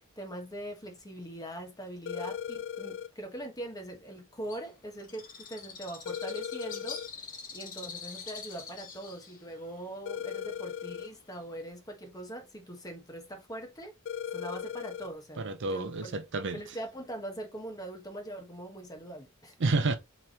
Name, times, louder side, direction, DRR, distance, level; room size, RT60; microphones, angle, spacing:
voice 1, 0.0-13.9 14.3-16.1 16.5-19.6, right 1 dB, 15° left, 1.2 m, -42 dB
sound 1, 2.1-3.1 6.1-7.1 10.1-11.1 14.1-15.1, left 8 dB, 55° left, 0.3 m, -37 dB
Bird, 4.5-11.7, left 5 dB, 40° left, 1.0 m, -45 dB
voice 2, 15.4-16.6 19.6-20.0, right 3 dB, 60° right, 0.6 m, -29 dB
4.6 x 3.4 x 2.9 m
head